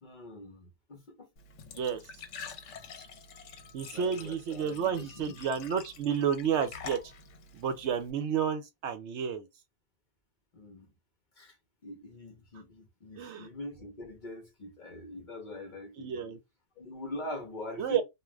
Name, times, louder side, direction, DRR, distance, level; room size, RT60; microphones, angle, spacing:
voice 1, 0.0-1.3 3.9-5.4 10.5-10.9 11.4-11.6 11.8-16.4 16.8-18.0, left 1 dB, 45° left, 0.8 m, -43 dB
Glass / Trickle dribble / Fill (with liquid), 1.4-8.1, left 5 dB, 70° left, 0.9 m, -47 dB
voice 2, 3.7-7.0 7.5-9.5 13.2-13.5 16.0-16.4 17.8-18.0, right 7 dB, 70° right, 0.8 m, -31 dB
2.4 x 2.4 x 3.2 m
omnidirectional pair, 1.3 m